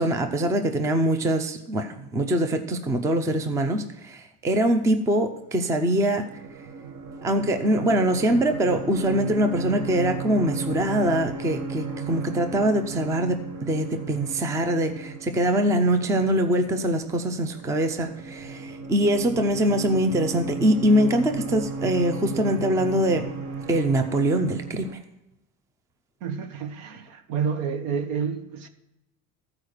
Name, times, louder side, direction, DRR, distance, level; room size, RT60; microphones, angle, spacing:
voice 1, 0.0-6.3 7.2-23.3 23.7-25.0, right 1 dB, 10° right, 0.4 m, -23 dB
sound 1, 5.5-24.9, right 4 dB, 45° right, 1.0 m, -35 dB
voice 2, 26.2-28.7, right 6 dB, 75° right, 1.2 m, -29 dB
14.0 x 4.8 x 6.5 m
cardioid pair, 160°, 38 cm